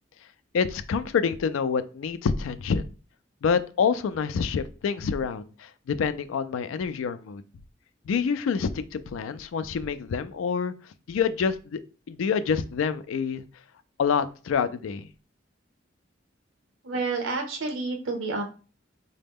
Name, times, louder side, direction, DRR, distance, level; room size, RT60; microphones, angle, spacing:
voice 1, 0.5-2.9 3.4-7.4 8.1-10.7 11.1-11.8 12.1-13.4 14.0-15.1, left 6 dB, 85° left, 13 dB, 0.4 m, -27 dB
voice 2, 16.8-18.4, right 3 dB, 80° right, 3 dB, 0.8 m, -29 dB
3.9 x 2.1 x 3.5 m, 0.36 s
head